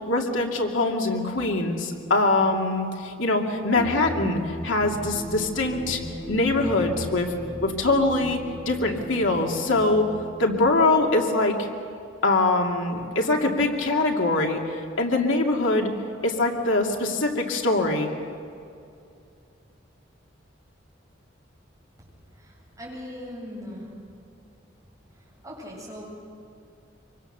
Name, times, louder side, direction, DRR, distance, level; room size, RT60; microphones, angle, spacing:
voice 1, 0.1-6.0 6.3-7.3 7.6-10.1 10.4-11.7 12.2-14.6 15.0-15.9 16.2-18.1, left 2 dB, 90° left, 1 dB, 2.5 m, -23 dB
sound 1, 3.7-10.9, equal, 5° left, 5.4 m, -37 dB
voice 2, 22.4-24.0 25.4-26.0, equal, 15° right, -5 dB, 7.9 m, -39 dB
25.0 x 25.0 x 6.8 m, 2.5 s
head